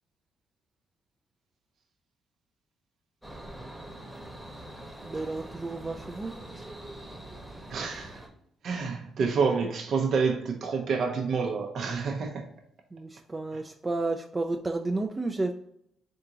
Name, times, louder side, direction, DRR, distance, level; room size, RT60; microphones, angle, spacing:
sound 1, 3.2-8.3, right 1 dB, 5° right, 1.0 m, -44 dB
voice 1, 5.0-6.3 12.9-15.5, right 2 dB, 20° right, 0.3 m, -31 dB
voice 2, 7.7-8.2 8.6-12.5, right 5 dB, 60° right, 0.6 m, -28 dB
3.8 x 3.6 x 2.8 m
cardioid pair, 90°, 0 cm